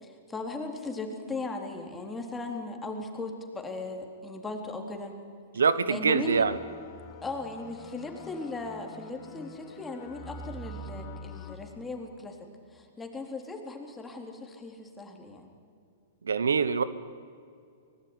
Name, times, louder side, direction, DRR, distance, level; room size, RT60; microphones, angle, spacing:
voice 1, 0.0-5.2 5.9-6.4 7.2-12.4 12.7-15.5, left 3 dB, 10° left, 2 dB, 3.9 m, -38 dB
voice 2, 5.5-6.6 16.2-16.8, right 5 dB, 85° right, 15 dB, 1.1 m, -24 dB
sound 1, 6.2-11.6, left 1 dB, 35° left, 3.7 m, -45 dB
24.0 x 20.0 x 9.8 m, 2.3 s
hypercardioid pair, 125°, 0 cm